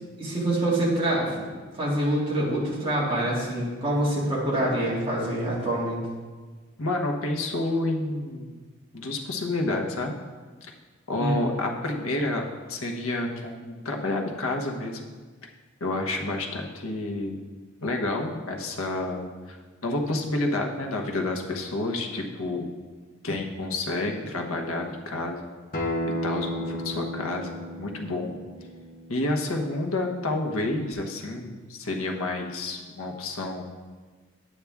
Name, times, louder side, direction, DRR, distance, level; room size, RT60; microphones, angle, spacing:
voice 1, 0.2-1.5 1.8-6.0 11.1-11.4, right 1 dB, 25° right, -6 dB, 2.3 m, -26 dB
voice 2, 6.8-8.6 8.9-10.2 10.6-10.7 11.1-15.1 15.8-17.4 17.8-22.7 23.2-25.5 26.2-28.3 29.1-33.6, left 2 dB, 85° left, 2 dB, 1.1 m, -29 dB
Acoustic guitar, 25.7-30.9, equal, 40° left, 1.0 m, -34 dB
9.7 x 8.6 x 3.5 m, 1.4 s
head